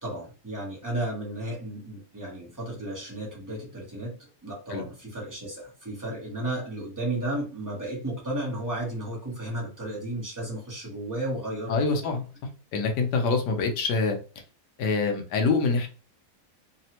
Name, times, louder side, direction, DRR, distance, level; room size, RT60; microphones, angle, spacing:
voice 1, 0.0-12.1, right 1 dB, 20° right, -3 dB, 0.5 m, -33 dB
voice 2, 11.7-12.3 12.7-14.2 14.8-15.9, left 4 dB, 85° left, 4 dB, 1.3 m, -25 dB
3.3 x 2.0 x 2.8 m, 0.34 s
omnidirectional pair, 1.8 m